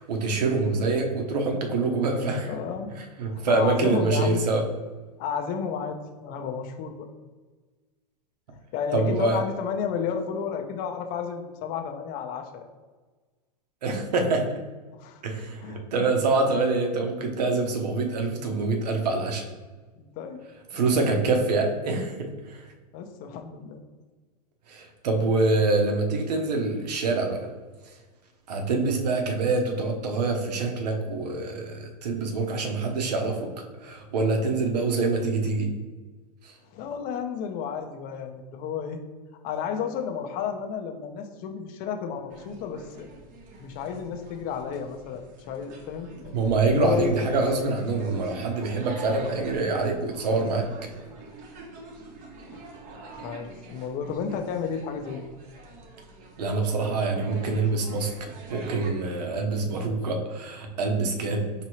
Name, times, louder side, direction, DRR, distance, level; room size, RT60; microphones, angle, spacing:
voice 1, 0.0-2.5 3.0-4.6 8.9-9.4 13.8-14.6 15.2-19.4 20.7-22.7 24.7-27.5 28.5-33.5 33.8-35.7 36.4-36.5 46.3-50.7 56.4-58.1 58.5-61.5, right 3 dB, 75° right, 3 dB, 0.9 m, -25 dB
voice 2, 2.4-2.9 3.3-4.4 5.2-7.1 8.7-12.7 15.0-15.2 15.6-15.9 19.9-20.4 20.7-20.9 22.9-23.8 36.7-39.0 39.4-43.1 43.6-46.3 46.7-47.2 52.5-52.6 53.1-55.3, left 7 dB, 45° left, 5 dB, 0.7 m, -32 dB
sound 1, 42.3-58.9, right 2 dB, 40° right, 0.9 m, -44 dB
4.5 x 2.9 x 3.0 m, 1.3 s
hypercardioid pair, 110°, 21 cm